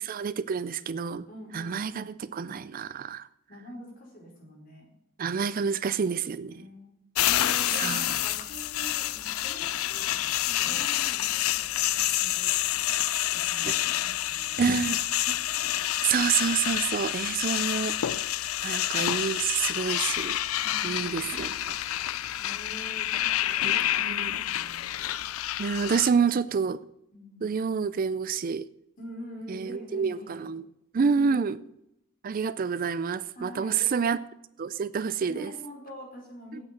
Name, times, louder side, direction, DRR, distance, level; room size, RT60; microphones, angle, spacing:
voice 1, 0.0-1.3 1.5-3.3 5.2-6.6 7.8-8.1 13.6-13.7 14.6-15.4 16.0-17.9 18.6-20.4 20.8-21.8 23.6-24.4 25.6-26.8 27.4-28.7 29.5-30.6 30.9-31.6 32.2-34.2 34.6-35.5, right 6 dB, 40° right, 16 dB, 0.4 m, -28 dB
voice 2, 1.3-2.1 3.5-4.9 6.5-6.9 7.2-12.5 13.3-14.6 15.3-15.4 20.6-21.2 22.4-24.8 26.1-26.2 27.1-27.5 29.0-30.4 31.0-31.5 33.3-33.9 35.3-36.6, equal, 40° left, -2 dB, 5.0 m, -45 dB
sound 1, 7.1-26.1, left 13 dB, 75° left, 0.4 m, -28 dB
8.9 x 8.5 x 7.6 m, 0.80 s
head